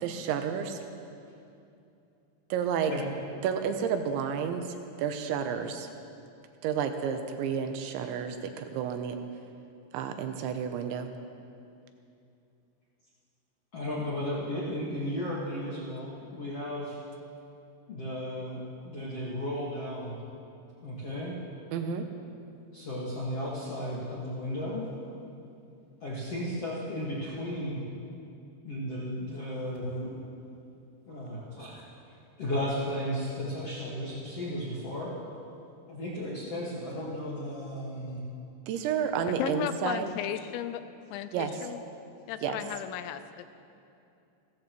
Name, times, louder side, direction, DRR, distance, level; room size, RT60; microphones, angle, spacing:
voice 1, 0.0-0.8 2.5-2.9 3.4-5.9 6.6-9.2 9.9-11.1 21.7-22.0 38.7-40.1 41.3-41.6 42.4-42.6, right 7 dB, 85° right, 7 dB, 3.0 m, -31 dB
voice 2, 13.7-17.0 17.9-20.2 20.8-21.3 22.7-24.9 26.0-27.8 28.6-30.1 31.0-31.8 32.4-35.1 35.9-38.2, left 1 dB, 55° left, -7 dB, 1.7 m, -34 dB
voice 3, 39.4-40.8 41.1-41.8 42.3-43.5, left 11 dB, 85° left, 11 dB, 2.8 m, -35 dB
29.5 x 14.0 x 3.1 m, 2.7 s
omnidirectional pair, 5.5 m